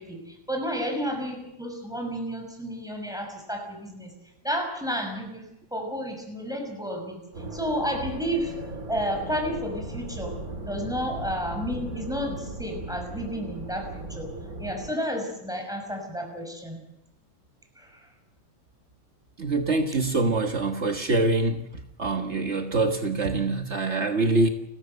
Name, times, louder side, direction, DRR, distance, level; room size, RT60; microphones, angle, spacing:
voice 1, 0.0-4.1 4.4-5.4 5.7-7.2 7.5-8.5 8.9-10.3 10.6-14.3 14.6-16.8 17.8-18.0, equal, ahead, 3 dB, 5.9 m, -31 dB
sound 1, 7.3-14.9, right 2 dB, 30° right, 2.7 m, -37 dB
voice 2, 19.4-21.6 22.0-24.5, right 2 dB, 55° right, 4 dB, 0.7 m, -24 dB
30.0 x 14.0 x 8.1 m, 0.84 s
omnidirectional pair, 3.6 m